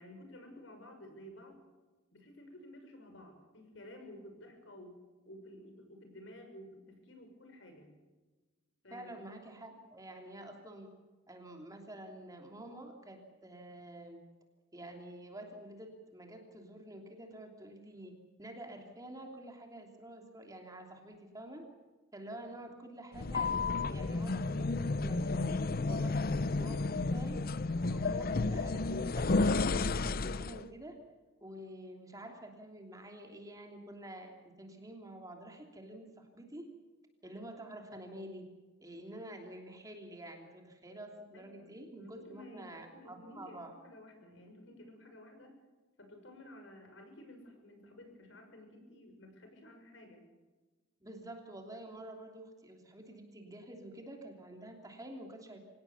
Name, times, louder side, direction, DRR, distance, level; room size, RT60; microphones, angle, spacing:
voice 1, 0.0-1.6 2.1-5.0 5.2-7.9 8.8-9.1 22.4-22.7 41.3-45.6 46.0-50.3, left 1 dB, 70° left, 5 dB, 6.4 m, -53 dB
voice 2, 8.9-10.9 11.3-14.2 14.7-21.7 22.1-25.6 25.9-27.4 27.8-31.0 31.4-36.7 37.2-38.5 38.8-43.8 51.0-55.7, right 1 dB, 20° right, 3 dB, 3.1 m, -48 dB
sound 1, 23.1-30.6, left 3 dB, 50° left, 0.7 m, -32 dB
25.5 x 18.0 x 7.0 m, 1.2 s
head